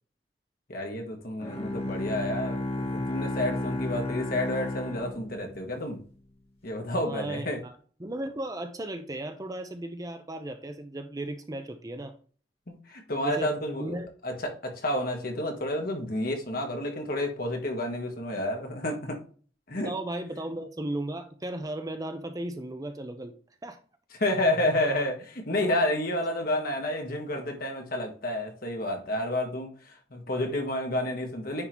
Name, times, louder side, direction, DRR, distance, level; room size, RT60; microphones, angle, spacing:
voice 1, 0.7-6.0 6.6-7.6 12.7-14.0 14.2-19.2 19.7-19.9 24.2-31.7, left 1 dB, 55° left, 1.6 m, -30 dB
Bowed string instrument, 1.4-5.8, left 2 dB, 35° left, 1.6 m, -33 dB
voice 2, 7.0-7.7 8.0-12.1 13.2-13.5 13.8-14.1 19.8-23.3 23.6-23.8, right 1 dB, 20° right, 0.6 m, -35 dB
9.5 x 3.8 x 3.0 m
head